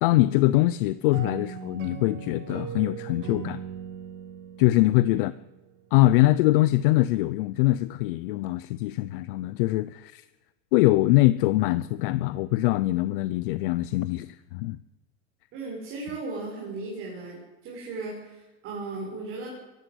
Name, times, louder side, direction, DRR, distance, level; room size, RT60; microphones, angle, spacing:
voice 1, 0.0-3.6 4.6-5.3 5.9-10.2 10.7-14.8, left 17 dB, 45° left, 16 dB, 0.6 m, -23 dB
sound 1, 1.1-5.8, right 8 dB, 85° right, 4.9 m, -39 dB
voice 2, 15.5-19.5, right 3 dB, 35° right, -3 dB, 6.5 m, -36 dB
23.0 x 14.5 x 8.1 m, 1.1 s
supercardioid pair, 165°, 39 cm